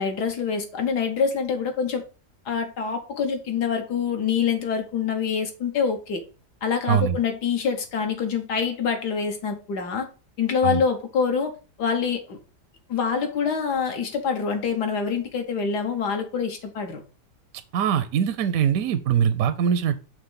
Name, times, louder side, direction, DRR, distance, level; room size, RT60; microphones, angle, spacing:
voice 1, 0.0-2.0 2.5-6.2 6.6-10.1 10.4-11.5 11.8-12.4 12.9-17.0, left 6 dB, 80° left, 1.7 m, -25 dB
voice 2, 17.7-20.0, right 8 dB, 70° right, 0.9 m, -22 dB
6.0 x 3.1 x 5.6 m
omnidirectional pair, 1.8 m